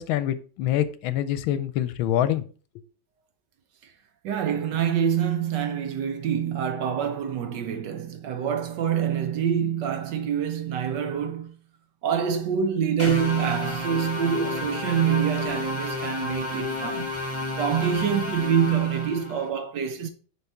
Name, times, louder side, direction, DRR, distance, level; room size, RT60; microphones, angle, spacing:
voice 1, 0.0-2.4, left 11 dB, 80° left, 1.3 m, -25 dB
voice 2, 4.2-11.6 12.0-17.1 17.6-20.1, right 8 dB, 70° right, 1.2 m, -26 dB
sound 1, 13.0-19.5, left 3 dB, 10° left, 1.3 m, -31 dB
7.0 x 4.1 x 4.5 m
omnidirectional pair, 2.2 m